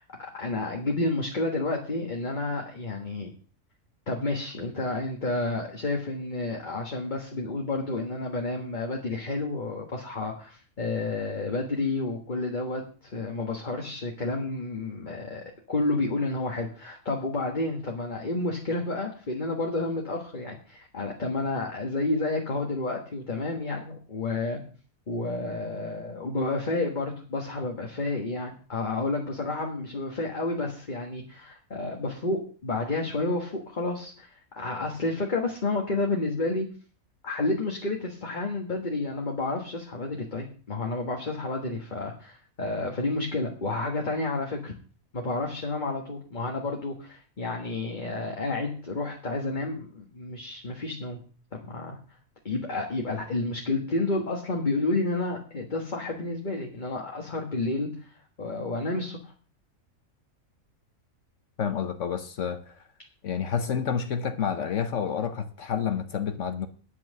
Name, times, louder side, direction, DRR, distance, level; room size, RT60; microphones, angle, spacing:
voice 1, 0.0-3.3 4.1-24.6 25.1-36.7 37.2-44.7 45.1-51.2 51.5-52.0 52.4-57.9 58.4-59.3, left 2 dB, 35° left, 1.6 m, -30 dB
voice 2, 61.6-62.6 63.2-66.7, left 7 dB, 65° left, 1.1 m, -29 dB
10.0 x 6.0 x 7.5 m
omnidirectional pair, 1.5 m